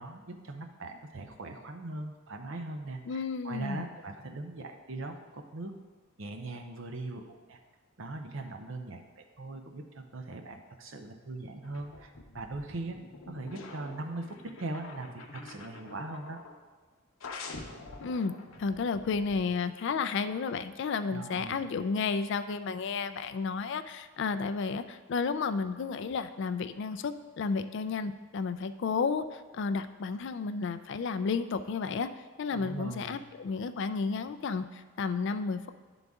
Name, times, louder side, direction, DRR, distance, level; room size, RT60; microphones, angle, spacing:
voice 1, 0.0-5.7 6.2-7.6 8.0-13.0 13.3-16.4 21.1-21.7 32.5-33.2, right 2 dB, 60° right, 5 dB, 0.7 m, -40 dB
voice 2, 3.1-3.8 18.0-18.3 18.6-32.1 32.4-35.7, left 5 dB, 55° left, 10 dB, 0.3 m, -32 dB
sound 1, 11.6-16.6 17.2-19.5, left 3 dB, 75° left, 0.8 m, -47 dB
10.5 x 3.9 x 3.5 m, 1.4 s
head